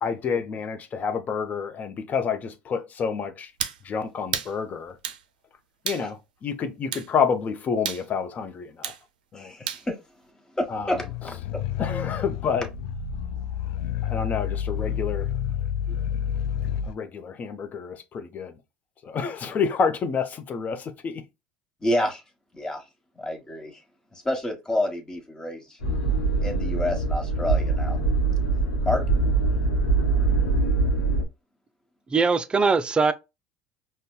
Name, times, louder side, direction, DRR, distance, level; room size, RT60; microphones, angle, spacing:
voice 1, 0.0-3.5 3.8-4.9 5.8-8.9 9.3-9.5 10.7-11.0 11.8-12.7 14.0-15.3 16.9-18.5 19.0-21.2, left 6 dB, 40° left, 0.7 m, -28 dB
sound 1, 3.6-3.8 4.3-4.5 5.0-5.2 5.9-6.1 6.9-7.1 7.9-8.1 8.8-9.0 9.7-9.9, right 9 dB, 85° right, 0.4 m, -31 dB
voice 2, 9.3-10.0 10.5-11.4 21.8-22.2 22.5-22.8 23.2-23.8 24.2-25.8 26.4-28.0 28.8-29.0, left 1 dB, 15° left, 1.3 m, -28 dB
sound 2, 10.8-16.9, left 9 dB, 70° left, 0.3 m, -29 dB
sound 3, 25.8-31.2, right 3 dB, 90° left, 0.9 m, -23 dB
voice 3, 32.1-33.1, right 4 dB, 20° right, 0.4 m, -21 dB
5.3 x 2.2 x 2.3 m
hypercardioid pair, 80°, 4 cm